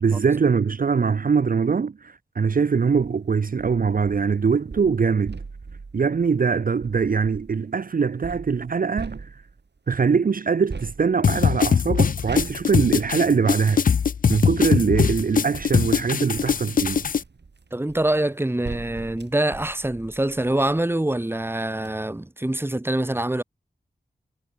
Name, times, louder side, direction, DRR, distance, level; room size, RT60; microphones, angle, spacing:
voice 1, 0.0-5.4 5.9-9.3 9.9-13.8 14.3-17.0, right 5 dB, 50° right, 0.6 m, -22 dB
sound 1, 2.8-3.1 3.6-7.6 8.2-9.8 10.7-14.1 15.0-20.9 21.4-21.5 21.7-21.9, right 4 dB, 70° right, 4.6 m, -40 dB
sound 2, 11.2-17.2, left 6 dB, 50° left, 0.4 m, -21 dB
voice 2, 17.7-23.4, right 1 dB, 10° right, 1.1 m, -25 dB
cardioid pair, 40°, 19 cm